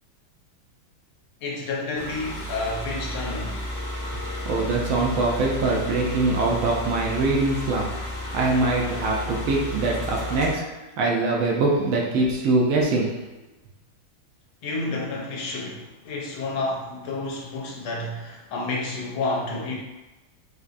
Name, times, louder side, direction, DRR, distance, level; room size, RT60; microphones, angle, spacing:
voice 1, 1.4-3.6 14.6-19.8, left 2 dB, 85° left, -2 dB, 1.6 m, -30 dB
sound 1, 1.9-10.5, left 1 dB, 50° left, 1.4 m, -32 dB
voice 2, 4.4-13.2, right 3 dB, 80° right, -2 dB, 1.4 m, -23 dB
4.5 x 2.4 x 2.5 m, 1.1 s
omnidirectional pair, 2.3 m